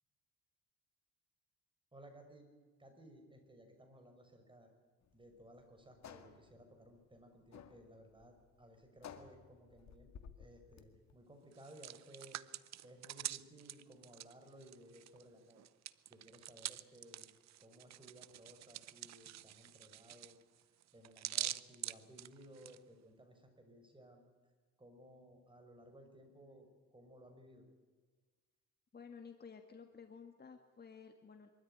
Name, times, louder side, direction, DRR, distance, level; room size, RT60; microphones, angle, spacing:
voice 1, 1.9-2.5 2.8-4.7 5.1-10.1 10.4-12.4 12.8-15.6 16.1-17.3 17.6-20.4 20.9-24.2 24.8-27.6, right 1 dB, 15° right, 4 dB, 5.5 m, -59 dB
sound 1, 5.0-11.2, left 7 dB, 65° left, 1.9 m, -56 dB
Hands, 11.5-15.2 15.5-22.8, right 13 dB, 65° right, 0.8 m, -45 dB
voice 2, 28.9-31.5, left 6 dB, 35° left, 5 dB, 1.9 m, -54 dB
23.5 x 13.5 x 10.0 m, 1.4 s
cardioid pair, 90°, 30 cm